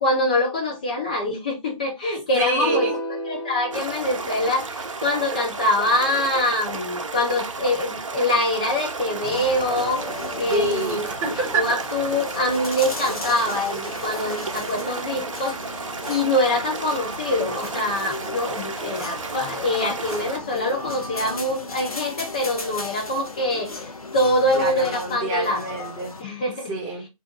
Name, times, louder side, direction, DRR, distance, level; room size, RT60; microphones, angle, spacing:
voice 1, 0.0-2.9 3.3-10.0 10.4-11.1 11.5-23.8 24.1-25.8 26.2-26.7, left 1 dB, 15° left, 0.3 m, -24 dB
voice 2, 2.3-3.0 10.5-11.9 24.5-26.1 26.7-27.1, right 3 dB, 15° right, 0.9 m, -27 dB
sound 1, 2.6-4.9, equal, 45° left, 0.9 m, -32 dB
sound 2, 3.7-20.4, right 4 dB, 60° right, 0.7 m, -32 dB
sound 3, 9.2-26.2, left 3 dB, 80° left, 0.7 m, -36 dB
2.6 x 2.2 x 3.5 m
figure-of-eight pair, 140°, 18 cm